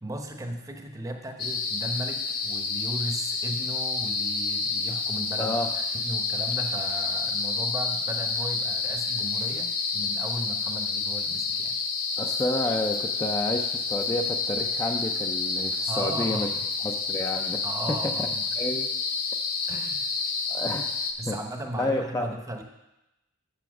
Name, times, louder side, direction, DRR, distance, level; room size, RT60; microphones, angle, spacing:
voice 1, 0.0-11.8 15.9-16.6 17.6-18.4 19.7-20.1 21.2-22.6, right 1 dB, 15° right, 4 dB, 0.7 m, -36 dB
sound 1, 1.4-21.1, left 4 dB, 45° left, 0.8 m, -29 dB
voice 2, 5.4-5.7 12.2-16.5 16.8-18.3 18.6-18.9 20.5-21.0 21.3-21.4 21.8-22.3, left 1 dB, 15° left, 3 dB, 0.4 m, -30 dB
7.1 x 6.8 x 6.0 m, 0.95 s
head